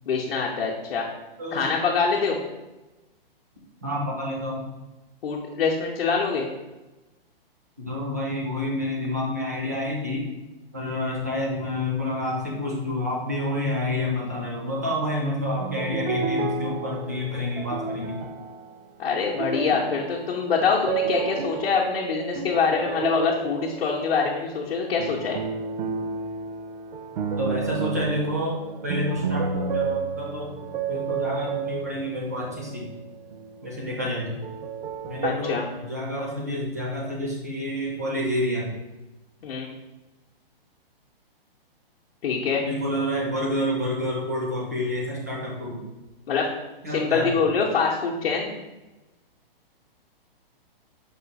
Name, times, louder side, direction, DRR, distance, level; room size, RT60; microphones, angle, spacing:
voice 1, 0.1-1.1 1.5-2.4 5.2-6.5 19.0-25.4 35.2-35.6 39.4-39.7 42.2-42.6 46.3-46.5 46.9-48.5, left 5 dB, 70° left, -3 dB, 0.7 m, -24 dB
voice 2, 1.4-1.8 3.8-4.7 7.8-10.3 10.7-18.2 27.4-30.6 30.9-32.9 33.6-34.4 35.1-38.7 42.6-45.8 46.8-47.5, left 1 dB, 20° right, -3 dB, 0.3 m, -29 dB
sound 1, 15.5-24.5 25.0-33.9 34.2-35.3, right 5 dB, 70° right, 0.5 m, -31 dB
4.9 x 2.3 x 3.9 m, 1.1 s
hypercardioid pair, 170°, 30 cm